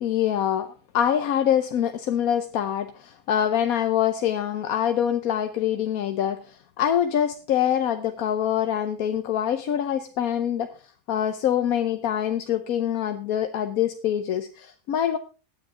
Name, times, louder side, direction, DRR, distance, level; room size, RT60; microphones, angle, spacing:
voice 1, 0.0-0.7 0.9-10.7 11.1-15.2, left 10 dB, 85° left, 8 dB, 1.3 m, -25 dB
16.5 x 10.0 x 3.7 m, 0.35 s
omnidirectional pair, 1.5 m